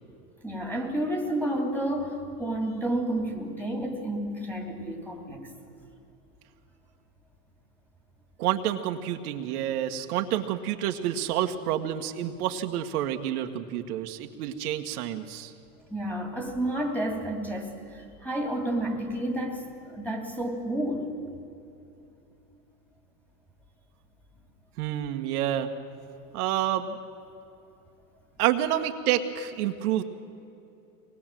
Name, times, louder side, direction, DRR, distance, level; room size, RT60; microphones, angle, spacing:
voice 1, 0.4-5.5 15.9-21.2, right 1 dB, 5° left, 2 dB, 3.1 m, -30 dB
voice 2, 8.4-15.5 24.8-25.7 26.3-27.0 28.4-30.0, right 11 dB, 65° right, 4 dB, 1.6 m, -28 dB
24.5 x 20.0 x 7.7 m, 2.8 s
supercardioid pair, 140°, 49 cm